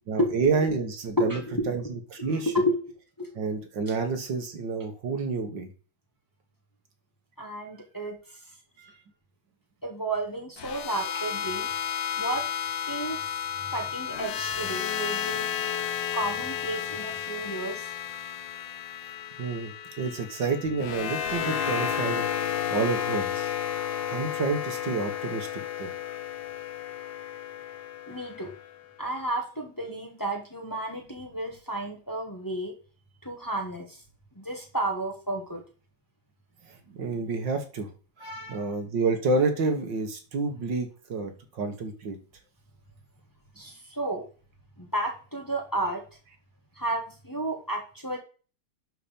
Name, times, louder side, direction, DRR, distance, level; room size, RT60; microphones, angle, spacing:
voice 1, 0.1-1.4 1.7-2.5 3.4-5.7 8.8-9.0 19.4-23.5 24.0-25.9 36.7-37.9 38.2-42.2, right 4 dB, 75° right, 5 dB, 2.3 m, -29 dB
voice 2, 1.2-1.9 2.5-2.8 3.2-3.3 7.4-8.2 9.8-11.7 12.2-12.5 12.9-13.2 13.7-15.5 16.1-17.9 28.1-28.5 29.0-32.7 33.2-34.0 34.4-35.6 38.2-38.6 43.6-44.2 44.8-46.0 46.8-48.2, right 1 dB, 10° left, 1 dB, 1.7 m, -31 dB
sound 1, 10.6-28.7, left 9 dB, 85° left, 1.6 m, -32 dB
11.0 x 4.4 x 5.4 m, 0.36 s
omnidirectional pair, 2.0 m